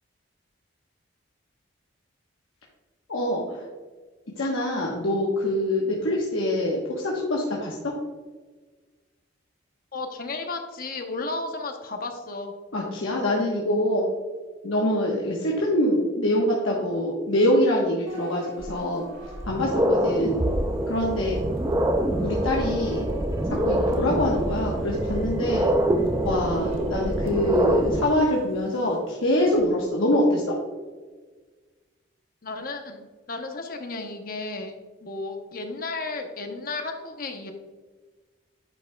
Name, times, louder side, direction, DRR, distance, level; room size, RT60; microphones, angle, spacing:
voice 1, 3.1-3.6 4.4-7.9 12.7-14.1 14.6-19.1 19.4-20.4 20.9-21.4 22.2-23.0 23.5-25.7 26.2-30.6, left 1 dB, 90° left, -3 dB, 1.1 m, -24 dB
voice 2, 9.9-12.5 32.4-34.7 35.0-37.5, left 3 dB, 45° left, 4 dB, 0.8 m, -33 dB
sound 1, 18.1-29.7, right 2 dB, 85° right, 1.3 m, -42 dB
sound 2, 18.6-18.7 19.2-28.0, right 1 dB, 15° right, 0.4 m, -25 dB
9.9 x 5.6 x 2.2 m, 1.3 s
head